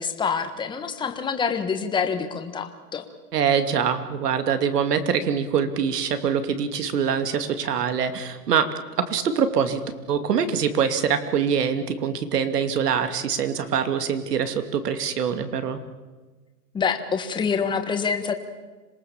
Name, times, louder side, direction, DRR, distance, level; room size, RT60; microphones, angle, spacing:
voice 1, 0.0-3.0 16.7-18.3, left 6 dB, 10° left, 7 dB, 1.4 m, -26 dB
voice 2, 3.3-8.7 9.0-9.8 10.1-15.8, right 7 dB, 75° right, 9 dB, 2.7 m, -24 dB
26.5 x 19.5 x 7.3 m, 1.3 s
hypercardioid pair, 150°, 47 cm